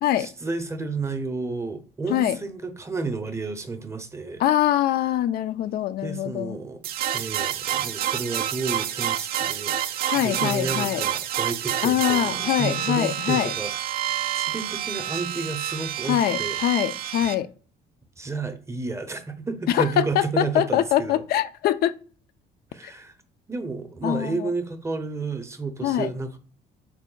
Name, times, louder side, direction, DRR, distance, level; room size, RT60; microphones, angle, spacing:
voice 1, 0.2-4.4 6.0-6.8 7.1-16.6 18.2-21.2 22.7-23.1 23.5-26.4, right 3 dB, 15° right, 0.6 m, -31 dB
voice 2, 4.4-6.6 10.0-11.0 11.8-13.5 16.1-17.5 19.7-21.9 22.8-22.9 24.0-24.5 25.8-26.1, left 12 dB, 65° left, 0.4 m, -23 dB
sound 1, 6.8-17.4, right 11 dB, 60° right, 0.4 m, -28 dB
4.5 x 2.1 x 3.8 m
cardioid pair, 110°, 17 cm